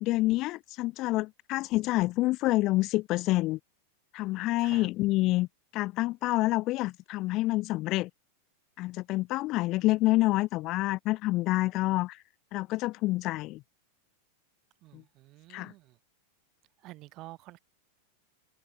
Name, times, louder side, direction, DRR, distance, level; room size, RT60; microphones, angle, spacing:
voice 1, 0.0-3.6 4.1-5.5 5.7-8.1 8.8-12.2 12.5-13.6 14.9-15.0 15.5-15.7, left 19 dB, 40° left, 0.4 m, -27 dB
voice 2, 4.6-4.9 14.8-16.0 16.8-17.6, right 19 dB, 40° right, 6.5 m, -49 dB
open air
figure-of-eight pair, 90°, 0 cm